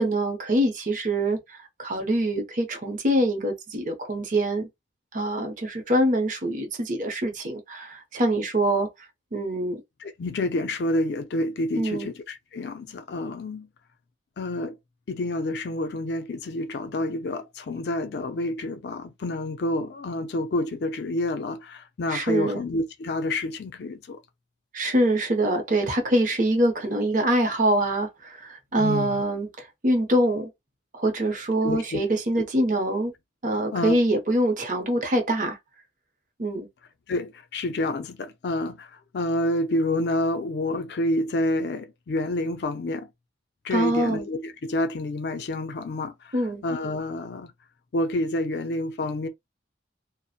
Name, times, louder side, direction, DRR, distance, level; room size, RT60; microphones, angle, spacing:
voice 1, 0.0-1.4 1.8-4.7 5.1-8.9 9.3-9.8 11.8-12.1 22.1-22.6 24.7-29.5 29.8-30.5 30.9-33.1 33.4-35.6 36.4-36.7 43.7-44.3 46.3-46.6, right 1 dB, 45° right, 0.7 m, -24 dB
voice 2, 10.0-13.7 14.4-14.8 15.1-24.2 28.8-29.2 31.6-32.0 33.7-34.0 37.1-43.1 43.6-47.5 47.9-49.3, left 1 dB, 60° left, 0.4 m, -28 dB
2.8 x 2.0 x 2.3 m
head